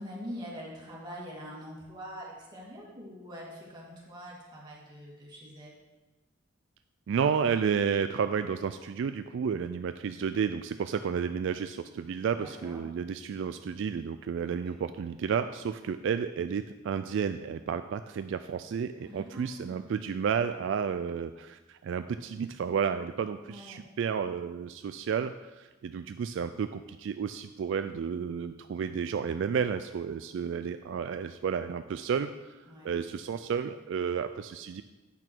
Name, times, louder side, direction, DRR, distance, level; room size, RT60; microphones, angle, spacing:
voice 1, 0.0-5.8 12.3-12.9 14.4-14.8 19.0-19.9 23.4-23.8 32.6-33.0, equal, 20° right, -5 dB, 2.3 m, -44 dB
voice 2, 7.1-32.6 32.8-34.8, right 6 dB, 70° right, 10 dB, 0.3 m, -31 dB
8.6 x 6.0 x 4.5 m, 1.1 s
head